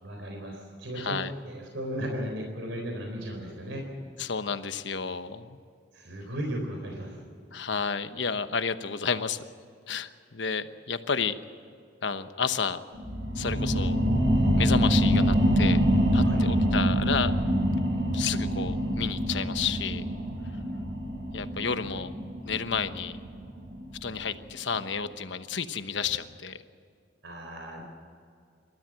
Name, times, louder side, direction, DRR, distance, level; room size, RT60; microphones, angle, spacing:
voice 1, 0.0-3.9 5.9-7.2 16.2-16.5 27.2-27.8, equal, 90° right, 2 dB, 4.0 m, -36 dB
voice 2, 1.0-1.3 4.2-5.6 7.5-9.4 9.9-11.3 12.0-12.8 13.3-14.0 14.6-15.8 16.1-17.3 18.1-20.1 21.3-22.1 22.4-23.2 24.0-26.6, left 6 dB, 75° left, 10 dB, 1.1 m, -31 dB
sound 1, 12.9-24.1 24.5-24.6, equal, 70° right, 6.8 m, -25 dB
27.5 x 13.5 x 7.6 m, 2.3 s
head